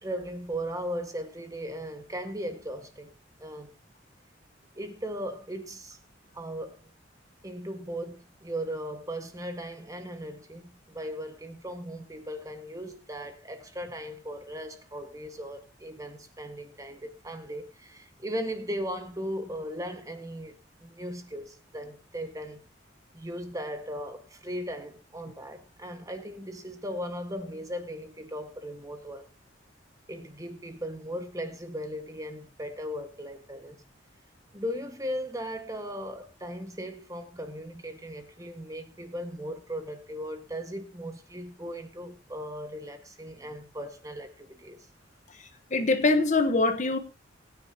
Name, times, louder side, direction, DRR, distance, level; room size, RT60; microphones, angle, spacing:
voice 1, 0.0-3.7 4.7-6.0 6.3-6.8 7.4-20.5 20.8-22.6 23.1-29.3 30.1-33.8 34.5-44.8, equal, 20° right, 1.6 m, -37 dB
voice 2, 45.7-47.0, left 3 dB, 40° left, 1.1 m, -23 dB
20.5 x 9.7 x 2.9 m
head